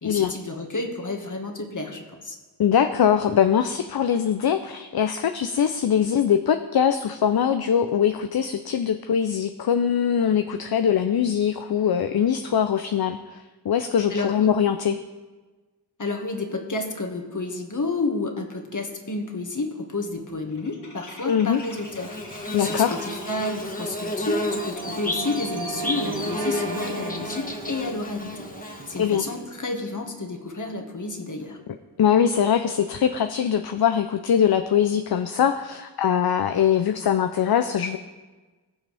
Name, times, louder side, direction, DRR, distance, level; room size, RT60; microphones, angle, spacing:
voice 1, 0.0-2.4 14.1-14.5 16.0-31.6, left 3 dB, 50° left, 2 dB, 1.8 m, -31 dB
voice 2, 2.6-15.0 21.3-21.6 22.5-23.0 29.0-29.2 32.0-38.0, left 8 dB, 65° left, 9 dB, 0.6 m, -22 dB
sound 1, 18.1-18.2 18.5-18.9 19.2-23.8, left 2 dB, 85° left, 3.3 m, -46 dB
sound 2, 20.2-32.8, right 5 dB, 55° right, 0.8 m, -40 dB
Bird / Buzz, 21.7-29.4, left 1 dB, 20° left, 1.4 m, -31 dB
20.0 x 7.2 x 3.4 m, 1.3 s
cardioid pair, 55°, 41 cm